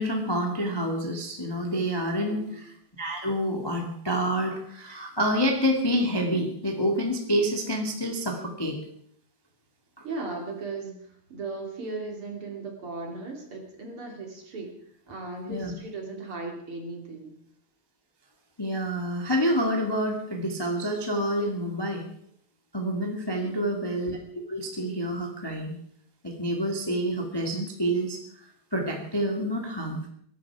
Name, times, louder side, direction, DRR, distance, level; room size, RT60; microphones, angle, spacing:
voice 1, 0.0-8.8 15.5-15.7 18.6-22.0 22.7-24.2 24.5-25.7 26.2-30.1, equal, 10° left, 1 dB, 1.3 m, -28 dB
voice 2, 2.2-2.6 10.0-14.7 15.1-17.3 23.4-23.9, right 3 dB, 40° right, 2 dB, 3.2 m, -37 dB
22.5 x 12.0 x 4.8 m, 0.66 s
omnidirectional pair, 4.3 m